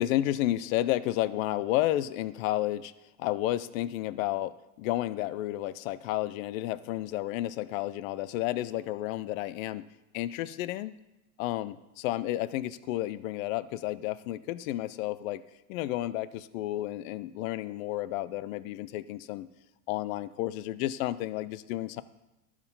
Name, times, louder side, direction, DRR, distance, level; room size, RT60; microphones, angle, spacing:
voice 1, 0.0-2.9 3.2-4.5 4.8-9.9 10.1-10.9 11.4-15.4 15.7-19.5 19.9-22.0, left 14 dB, 70° left, 16 dB, 0.6 m, -31 dB
12.0 x 4.8 x 5.4 m, 0.94 s
supercardioid pair, 130°, 43 cm